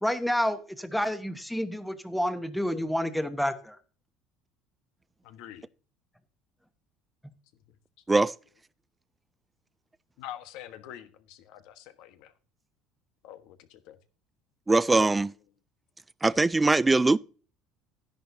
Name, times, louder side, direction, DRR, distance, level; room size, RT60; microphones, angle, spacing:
voice 1, 0.0-3.8, equal, ahead, 1.1 m, -29 dB
voice 2, 5.2-5.7 7.7-7.8 10.2-12.3 13.2-14.0, left 11 dB, 75° left, 1.3 m, -45 dB
voice 3, 14.7-15.3 16.2-17.2, right 3 dB, 15° right, 0.4 m, -21 dB
12.0 x 10.5 x 2.7 m
cardioid pair, 115°, 0 cm